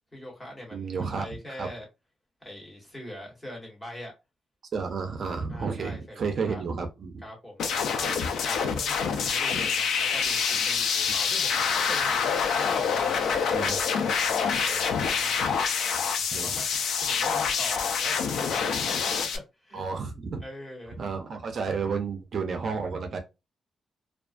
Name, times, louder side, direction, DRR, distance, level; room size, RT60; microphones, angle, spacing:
voice 1, 0.1-1.8 2.4-4.1 5.5-6.6 7.2-15.4 16.3-16.7 17.0-19.8 20.4-21.0, left 1 dB, 15° left, 1.1 m, -42 dB
voice 2, 0.7-1.3 1.6-1.7 4.7-7.2 8.1-8.3 11.1-11.2 13.5-13.8 15.9-16.0 16.3-16.5 19.7-20.4 21.0-23.2, right 5 dB, 50° right, 0.4 m, -31 dB
sound 1, 7.6-19.4, left 6 dB, 80° left, 0.3 m, -26 dB
2.4 x 2.2 x 2.4 m
wide cardioid pair, 140°, 0 cm